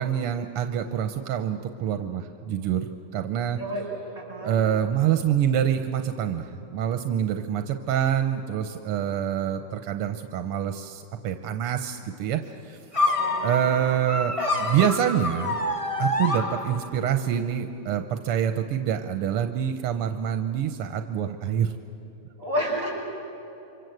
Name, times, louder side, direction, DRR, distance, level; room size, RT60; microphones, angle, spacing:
voice 1, 0.0-2.9 3.1-3.6 4.4-12.4 12.6-12.8 13.4-15.6 16.0-21.7, right 9 dB, 85° right, 7 dB, 1.9 m, -26 dB
voice 2, 4.1-4.6 13.1-13.7 22.4-22.9, equal, 35° right, -1 dB, 7.0 m, -30 dB
sound 1, 12.9-17.1, left 2 dB, 15° left, 1.5 m, -27 dB
28.5 x 24.5 x 7.9 m, 3.0 s
omnidirectional pair, 2.4 m